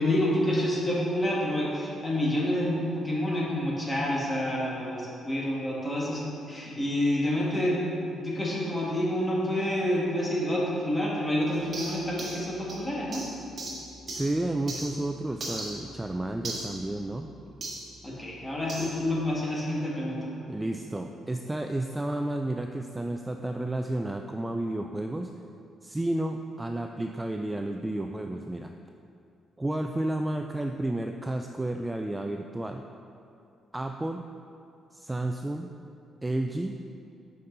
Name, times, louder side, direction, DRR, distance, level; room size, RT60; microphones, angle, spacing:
voice 1, 0.0-13.2 18.0-20.3, left 1 dB, 15° left, -5 dB, 1.8 m, -28 dB
sound 1, 11.5-15.0 15.4-17.9 18.7-19.0, right 2 dB, 45° right, 1.5 m, -39 dB
voice 2, 14.1-17.3 20.5-25.3 25.8-28.7 29.6-32.9 33.7-34.2 34.9-35.7 36.2-36.7, right 1 dB, 15° right, 4 dB, 0.3 m, -31 dB
7.7 x 5.4 x 3.9 m, 2.6 s
cardioid pair, 90°, 0 cm